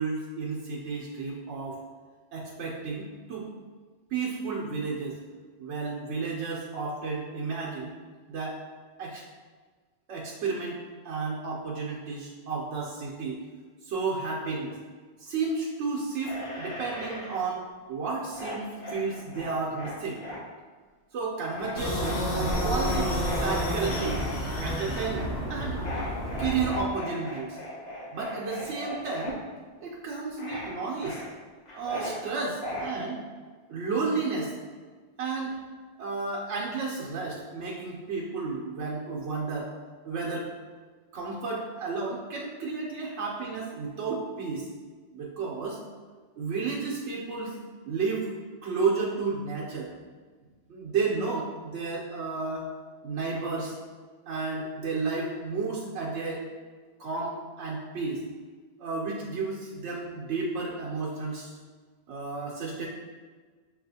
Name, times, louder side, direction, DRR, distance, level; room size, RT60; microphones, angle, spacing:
voice 1, 0.0-1.8 2.3-3.5 4.1-5.2 5.6-7.9 8.3-8.6 9.0-9.2 10.1-10.8 11.0-13.4 13.8-14.8 15.2-20.2 21.1-24.2 24.6-25.8 26.4-27.6 28.1-29.4 29.8-31.2 31.7-33.2 33.7-34.5 35.2-35.6 36.0-39.7 40.0-40.5 41.1-44.7 45.1-45.8 46.4-47.5 47.9-48.3 48.6-49.9 50.7-52.7 53.0-53.8 54.3-56.4 57.0-58.2 58.8-61.5 62.1-62.9, right 4 dB, 90° right, -4 dB, 1.0 m, -32 dB
sound 1, 16.2-17.4 18.3-20.4 21.5-24.4 25.8-29.3 30.4-30.7 31.0-32.2 32.6-32.9, left 1 dB, 45° left, 0.8 m, -38 dB
sound 2, 21.8-26.8, equal, 80° left, 1.2 m, -30 dB
6.5 x 2.4 x 2.7 m, 1.5 s
omnidirectional pair, 1.2 m